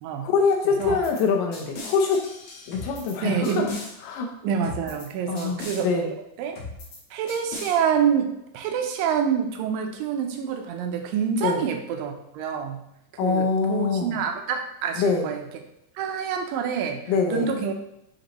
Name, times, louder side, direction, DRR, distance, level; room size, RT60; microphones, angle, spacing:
voice 1, 0.2-2.3 2.7-3.7 4.0-4.3 5.3-6.1 11.4-11.6 13.2-14.2 15.0-15.3 17.1-17.5, left 5 dB, 80° left, 2 dB, 2.4 m, -24 dB
sound 1, 0.8-1.2 1.5-3.1 3.4-3.9 4.6-5.1 5.4-5.8 6.6-7.0 7.3-7.8, left 3 dB, 60° left, 1.4 m, -38 dB
voice 2, 3.2-3.7 4.4-5.9 6.4-6.6 7.1-8.3 8.5-12.8 13.2-15.4 16.0-17.0 17.3-17.7, right 7 dB, 90° right, 4 dB, 2.5 m, -26 dB
6.3 x 5.2 x 3.0 m, 0.82 s
omnidirectional pair, 3.9 m